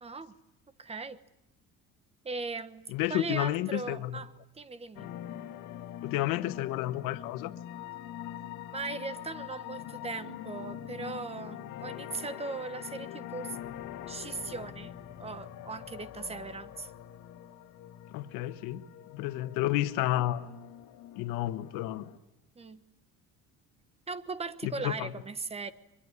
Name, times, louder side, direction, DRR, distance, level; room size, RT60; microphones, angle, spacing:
voice 1, 0.0-0.3 0.8-1.2 2.2-5.1 8.7-13.6 14.1-14.9 15.2-16.9 22.6-22.8 24.1-25.7, right 4 dB, 20° right, 13 dB, 1.1 m, -38 dB
voice 2, 2.9-4.2 6.0-7.5 18.1-18.8 19.1-20.5 21.1-22.1 24.6-25.1, left 15 dB, 85° left, 10 dB, 1.4 m, -31 dB
sound 1, 4.9-22.2, left 11 dB, 65° left, 1.8 m, -44 dB
23.5 x 22.5 x 9.7 m, 0.89 s
cardioid pair, 140°, 32 cm